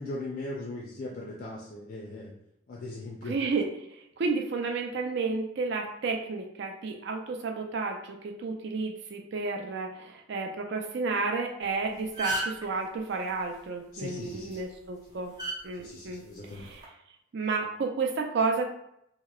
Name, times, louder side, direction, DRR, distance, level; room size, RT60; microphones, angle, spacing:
voice 1, 0.0-2.3 2.7-3.3 13.9-14.6 15.8-16.7, left 2 dB, 50° left, -4 dB, 0.4 m, -39 dB
voice 2, 3.2-15.3 15.6-16.9 17.3-18.7, right 4 dB, 60° right, 2 dB, 0.4 m, -31 dB
sound 1, 11.6-11.7 12.0-12.7 14.3-14.5 15.4-15.6 16.6-16.8, right 1 dB, 20° right, 0.7 m, -31 dB
2.8 x 2.0 x 2.3 m, 0.77 s
head